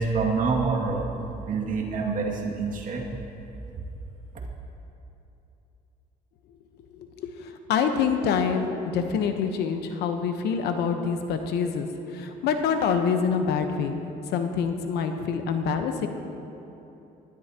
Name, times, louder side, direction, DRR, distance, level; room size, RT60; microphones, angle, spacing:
voice 1, 0.0-3.0, right 4 dB, 50° right, -2 dB, 2.3 m, -27 dB
voice 2, 6.9-16.1, left 6 dB, 80° left, 6 dB, 1.0 m, -26 dB
20.0 x 12.5 x 2.9 m, 3.0 s
cardioid pair, 110°, 17 cm